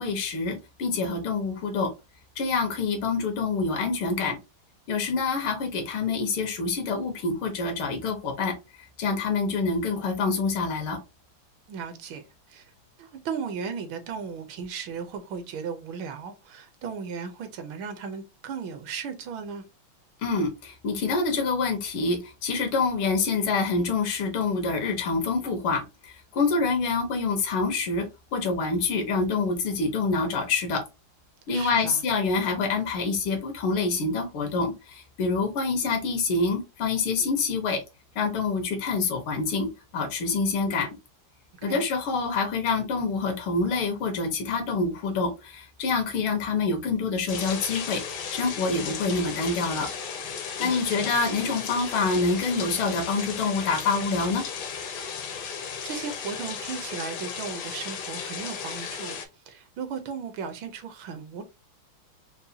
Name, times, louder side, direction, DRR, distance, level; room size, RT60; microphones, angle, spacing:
voice 1, 0.0-1.9 2.4-4.4 4.9-8.6 9.0-11.0 20.2-30.8 31.5-37.8 38.2-40.9 41.6-48.0 48.3-49.9 50.6-54.4, left 4 dB, 80° left, 1.9 m, -26 dB
voice 2, 11.7-12.2 12.5-12.7 13.0-19.6 31.5-32.0 41.7-41.9 50.6-51.1 55.5-59.2 59.5-61.4, right 6 dB, 75° right, 1.4 m, -36 dB
sound 1, 47.3-59.2, left 6 dB, 65° left, 1.1 m, -35 dB
5.4 x 2.2 x 2.7 m
omnidirectional pair, 2.3 m